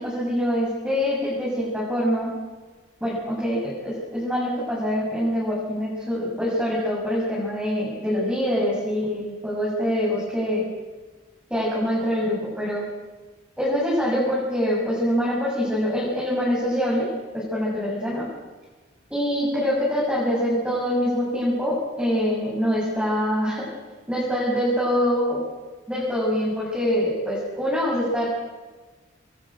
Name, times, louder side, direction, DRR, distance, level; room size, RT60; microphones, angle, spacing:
voice 1, 0.0-2.3 3.0-10.7 11.5-12.8 13.6-17.1 17.3-18.2 19.1-23.6 24.1-25.4 25.9-28.3, equal, 5° right, -7 dB, 7.7 m, -24 dB
27.5 x 23.5 x 7.9 m, 1.3 s
head